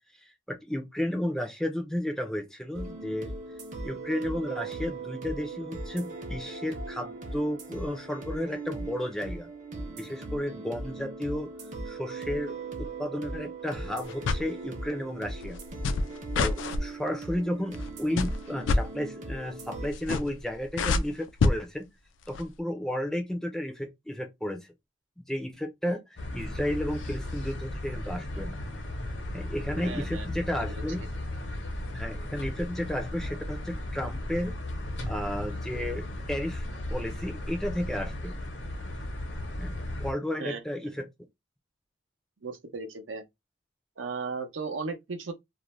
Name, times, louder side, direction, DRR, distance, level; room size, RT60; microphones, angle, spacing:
voice 1, 0.2-3.3 3.8-9.5 10.0-11.5 11.9-15.6 16.4-21.9 22.3-24.7 25.2-28.6 29.3-31.0 31.9-34.5 35.1-36.6 36.9-38.4 39.6-39.7 40.0-41.1, left 1 dB, 5° left, 0.4 m, -33 dB
sound 1, 2.7-19.9, right 2 dB, 45° right, 0.6 m, -39 dB
sound 2, 14.1-14.5 15.4-16.8 17.7-17.9 18.2-18.8 19.9-20.4 20.7-21.6 22.3-22.4, left 3 dB, 85° left, 0.3 m, -26 dB
sound 3, 26.2-40.1, left 1 dB, 70° left, 0.7 m, -35 dB
voice 2, 29.8-30.3 40.4-40.6 42.4-43.2 44.0-45.3, right 4 dB, 90° right, 0.6 m, -35 dB
2.5 x 2.1 x 3.0 m
head